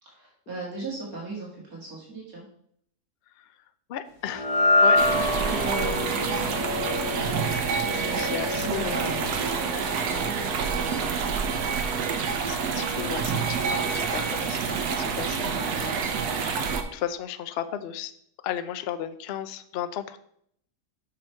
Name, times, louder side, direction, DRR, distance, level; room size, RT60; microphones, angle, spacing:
voice 1, 0.0-2.4 5.1-6.5 7.8-10.9, right 2 dB, 65° right, -4 dB, 2.3 m, -37 dB
voice 2, 3.9-4.5 4.8-5.4 8.2-9.1 12.5-15.9 16.3-18.1 18.4-20.2, left 10 dB, 70° left, 12 dB, 0.5 m, -35 dB
sound 1, 4.3-10.7, left 2 dB, 90° left, 1.7 m, -27 dB
sound 2, 5.0-16.8, right 6 dB, 90° right, 1.4 m, -28 dB
6.0 x 6.0 x 4.4 m, 0.68 s
omnidirectional pair, 1.7 m